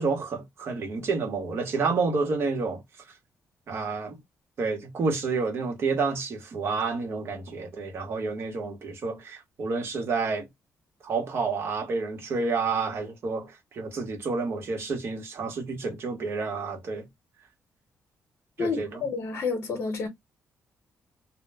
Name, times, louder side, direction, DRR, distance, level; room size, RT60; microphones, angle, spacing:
voice 1, 0.0-2.8 3.7-4.2 4.6-10.5 11.0-17.1 18.6-19.0, right 4 dB, 55° right, 1.0 m, -29 dB
voice 2, 18.6-20.1, left 4 dB, 50° left, 0.8 m, -29 dB
2.2 x 2.0 x 3.3 m
cardioid pair, 120°, 5 cm